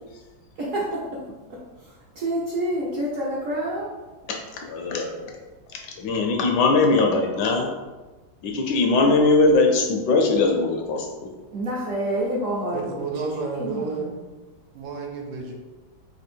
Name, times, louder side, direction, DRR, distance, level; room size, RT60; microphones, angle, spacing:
voice 1, 0.6-1.0 1.8-3.9 11.5-13.0 13.5-14.2, right 1 dB, 65° right, -4 dB, 0.8 m, -28 dB
voice 2, 4.3-5.4 5.7-7.7 8.4-11.3, left 3 dB, 75° left, 2 dB, 1.1 m, -21 dB
voice 3, 12.7-14.1 14.7-15.5, right 4 dB, 85° right, 1 dB, 1.5 m, -30 dB
3.6 x 2.6 x 4.3 m, 1.2 s
omnidirectional pair, 2.1 m